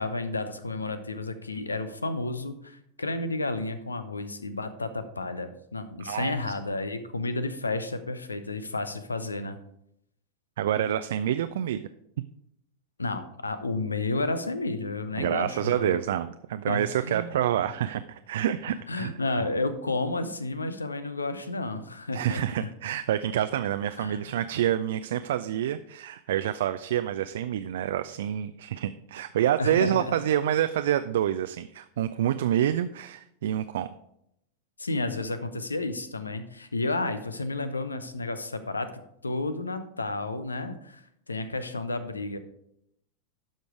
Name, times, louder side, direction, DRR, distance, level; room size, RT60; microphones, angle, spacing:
voice 1, 0.0-9.6 13.0-16.0 16.7-17.3 18.9-22.7 24.0-24.2 29.6-30.1 34.8-38.9 39.2-42.4, left 2 dB, 80° left, 12 dB, 0.8 m, -31 dB
voice 2, 6.0-6.3 10.6-11.8 15.2-19.1 19.4-19.5 22.1-33.9, right 11 dB, 60° right, 10 dB, 0.3 m, -27 dB
12.0 x 5.2 x 4.7 m, 0.77 s
figure-of-eight pair, 90°, 0 cm